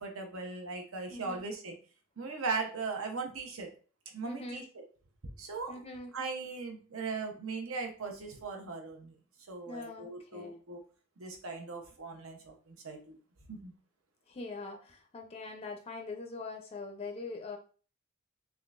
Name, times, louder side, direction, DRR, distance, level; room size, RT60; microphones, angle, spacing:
voice 1, 0.0-1.7 2.2-3.7 4.1-4.8 5.4-5.7 6.1-9.1 9.5-10.8 11.2-13.2 13.5-13.7, right 4 dB, 75° right, 3 dB, 0.8 m, -39 dB
voice 2, 1.1-1.4 4.2-4.6 5.7-6.1 9.7-10.6 14.3-17.6, left 3 dB, 30° left, 3 dB, 0.4 m, -42 dB
3.6 x 3.2 x 2.4 m, 0.38 s
head